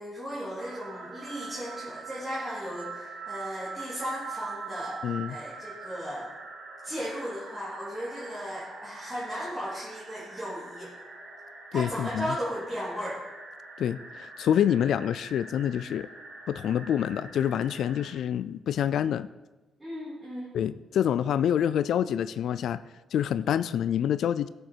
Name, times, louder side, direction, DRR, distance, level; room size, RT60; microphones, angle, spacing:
voice 1, 0.0-6.3 6.8-10.9 11.7-13.2 19.8-20.5, equal, 10° right, -8 dB, 2.8 m, -36 dB
sound 1, 0.6-18.1, right 4 dB, 70° right, 3.2 m, -43 dB
voice 2, 5.0-5.4 11.7-12.3 13.8-16.1 16.5-19.3 20.5-22.8 23.1-24.5, left 9 dB, 70° left, 15 dB, 0.3 m, -27 dB
14.5 x 6.7 x 4.6 m, 1.1 s
cardioid pair, 130°, 0 cm